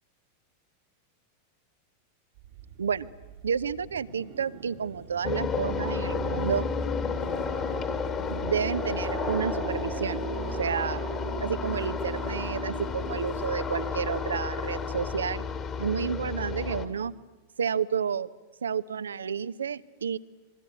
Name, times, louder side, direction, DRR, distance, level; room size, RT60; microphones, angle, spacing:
sound 1, 2.4-15.8, right 10 dB, 50° right, 1.6 m, -40 dB
voice 1, 3.4-6.7 8.3-11.0 11.4-15.5 15.8-17.1 17.6-18.3 18.6-20.2, right 7 dB, 70° right, 16 dB, 0.9 m, -30 dB
sound 2, 5.2-16.9, left 6 dB, 30° left, 2.7 m, -32 dB
26.0 x 22.5 x 9.8 m, 1.2 s
figure-of-eight pair, 90°, 0 cm